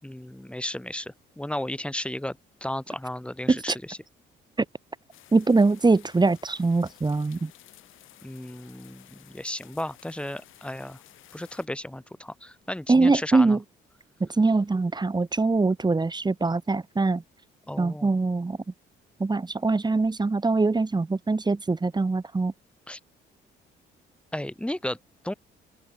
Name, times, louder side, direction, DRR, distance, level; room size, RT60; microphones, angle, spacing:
voice 1, 0.0-4.0 8.2-11.0 11.3-13.6 17.7-18.1 22.9-23.0 24.3-25.0 25.2-25.3, left 1 dB, 5° left, 4.2 m, -34 dB
sound 1, 5.1-11.7, left 14 dB, 85° left, 6.8 m, -54 dB
voice 2, 5.3-7.5 12.9-13.6 14.2-17.2 17.8-18.6 19.2-22.5, right 3 dB, 20° right, 2.1 m, -23 dB
open air
cardioid pair, 90°, 20 cm